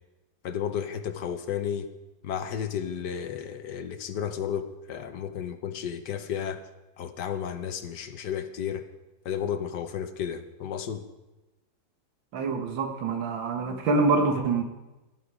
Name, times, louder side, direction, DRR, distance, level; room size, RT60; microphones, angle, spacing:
voice 1, 0.4-1.9 2.2-6.6 7.0-8.8 9.2-11.0, left 8 dB, 65° left, 9 dB, 1.4 m, -32 dB
voice 2, 12.3-14.6, right 3 dB, 85° right, 5 dB, 2.2 m, -25 dB
16.0 x 11.5 x 4.9 m, 1.1 s
omnidirectional pair, 2.1 m